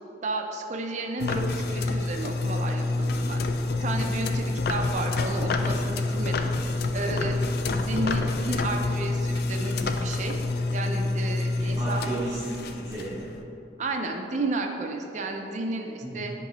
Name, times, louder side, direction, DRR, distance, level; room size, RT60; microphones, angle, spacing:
voice 1, 0.2-3.4 3.8-6.5 6.9-10.3 10.7-12.1 13.8-16.3, right 2 dB, 40° right, 3 dB, 0.5 m, -32 dB
sound 1, 1.2-13.4, left 2 dB, 55° left, 0.3 m, -27 dB
voice 2, 11.5-13.3 16.0-16.3, right 1 dB, 20° right, -11 dB, 1.0 m, -34 dB
7.7 x 3.1 x 3.9 m, 2.8 s
head